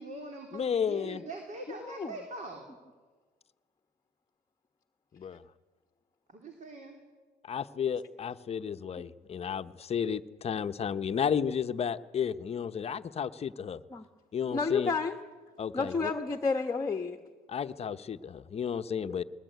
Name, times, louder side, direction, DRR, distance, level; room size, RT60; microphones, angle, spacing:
voice 1, 0.0-2.7 6.3-7.0, right 2 dB, 45° right, 3 dB, 3.6 m, -43 dB
voice 2, 0.5-1.2 5.1-5.4 7.5-13.8 14.3-14.9 15.6-16.1 17.5-19.2, left 7 dB, 35° left, 11 dB, 0.9 m, -32 dB
voice 3, 1.8-2.1 8.9-9.0 13.9-14.0 14.5-15.2 15.7-17.2, left 4 dB, 20° left, 5 dB, 1.3 m, -31 dB
20.5 x 20.5 x 9.3 m, 1.4 s
cardioid pair, 110°, 17 cm